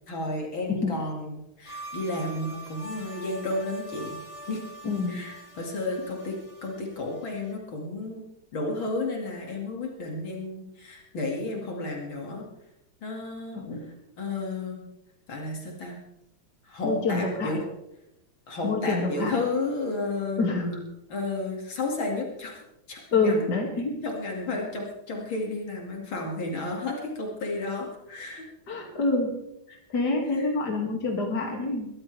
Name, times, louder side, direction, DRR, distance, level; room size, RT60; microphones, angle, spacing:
voice 1, 0.1-4.2 4.5-4.6 5.1-8.2 8.5-12.5 13.0-13.6 14.2-14.8 15.3-16.0 16.6-17.6 18.5-20.5 21.1-22.6 22.9-23.5 24.0-28.4 30.3-30.5, left 2 dB, 70° left, 0 dB, 3.1 m, -32 dB
sound 1, 1.7-7.5, right 2 dB, 15° left, 2.6 m, -44 dB
voice 2, 4.8-5.2 13.5-13.8 16.8-17.6 18.6-19.4 20.4-20.8 23.1-24.0 28.7-29.3 29.7-31.9, left 3 dB, 50° left, 1 dB, 3.0 m, -27 dB
22.0 x 14.0 x 3.4 m, 0.85 s
omnidirectional pair, 2.3 m